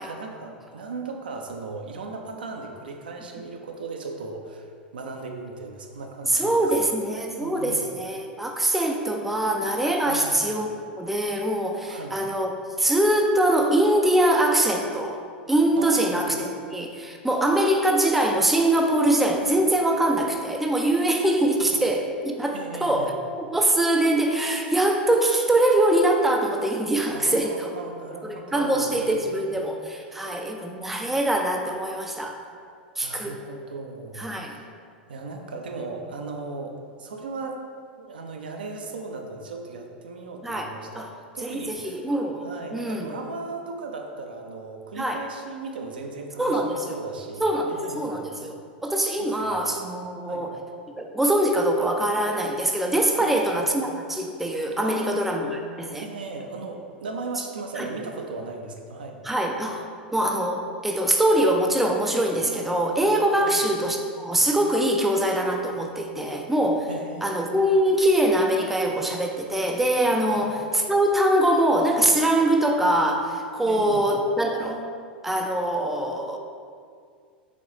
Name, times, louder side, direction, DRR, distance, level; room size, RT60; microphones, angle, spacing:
voice 1, 0.0-6.7 7.4-7.9 10.1-10.5 11.9-12.2 15.8-16.4 21.6-21.7 22.5-23.1 27.1-30.4 33.0-34.7 35.1-37.6 38.0-41.1 41.3-42.0 42.4-48.3 49.2-49.6 50.2-50.5 53.1-53.6 54.8-55.2 56.0-59.2 63.3-63.6 66.9-67.6 70.3-70.4 73.6-74.1, right 3 dB, 70° right, 3 dB, 0.4 m, -37 dB
voice 2, 6.3-10.7 11.0-12.5 12.8-15.2 15.5-23.1 23.4-27.7 28.3-32.4 33.0-33.4 34.2-34.5 40.4-40.7 41.0-41.1 41.4-43.1 45.0-45.2 46.4-47.0 47.4-50.6 51.0-56.0 57.8-57.9 59.2-66.9 67.2-74.8 75.2-76.4, right 1 dB, 5° right, 2 dB, 0.3 m, -23 dB
4.1 x 3.8 x 2.9 m, 2.2 s
figure-of-eight pair, 90°, 5 cm